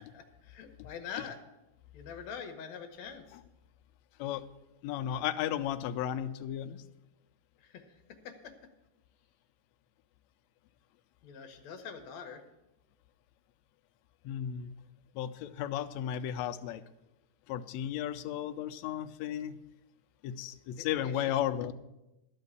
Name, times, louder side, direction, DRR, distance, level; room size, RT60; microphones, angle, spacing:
voice 1, 0.0-1.4 1.9-3.4 7.6-7.8 8.2-8.5 11.2-12.4 20.8-21.4, left 7 dB, 70° left, 6 dB, 2.0 m, -44 dB
voice 2, 4.8-6.8 14.2-14.7 15.1-16.8 17.5-19.6 20.2-21.7, left 10 dB, 85° left, 9 dB, 1.5 m, -34 dB
12.0 x 5.7 x 8.1 m, 0.96 s
omnidirectional pair, 3.8 m